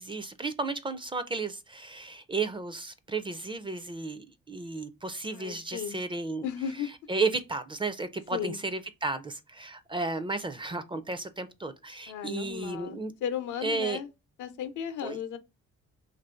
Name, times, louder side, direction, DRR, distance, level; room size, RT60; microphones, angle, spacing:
voice 1, 0.0-6.5 7.1-13.1 13.6-14.0 15.0-15.2, right 3 dB, 15° right, 0.4 m, -33 dB
voice 2, 5.3-6.0 6.4-6.9 8.3-8.6 12.1-14.1 14.4-15.4, left 8 dB, 80° left, 0.7 m, -35 dB
3.0 x 2.6 x 4.3 m
cardioid pair, 90°, 30 cm